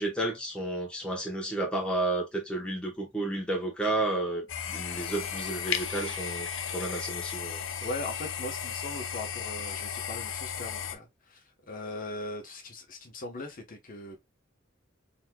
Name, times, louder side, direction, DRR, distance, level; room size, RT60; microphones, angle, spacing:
voice 1, 0.0-7.6, right 2 dB, 5° left, 1.0 m, -32 dB
sound 1, 4.5-11.0, left 7 dB, 70° left, 0.5 m, -35 dB
voice 2, 7.8-14.2, left 2 dB, 45° left, 1.0 m, -39 dB
4.2 x 2.8 x 2.2 m
head